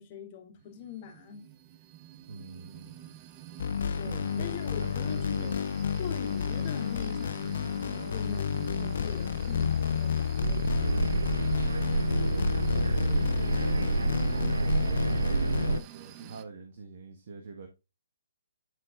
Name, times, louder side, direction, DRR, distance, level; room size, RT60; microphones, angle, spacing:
voice 1, 0.0-1.5 4.0-5.6 6.0-8.5 8.8-11.1, left 7 dB, 35° left, 2.8 m, -43 dB
sound 1, 0.6-16.4, right 13 dB, 25° right, 0.8 m, -48 dB
voice 2, 2.2-3.1 4.0-5.5 11.8-12.4 12.7-17.7, right 4 dB, 50° right, 1.5 m, -45 dB
sound 2, 3.6-15.8, left 7 dB, 60° left, 0.5 m, -30 dB
sound 3, 10.4-15.8, right 4 dB, 75° right, 0.3 m, -28 dB
11.5 x 5.2 x 2.5 m
figure-of-eight pair, 140°, 0 cm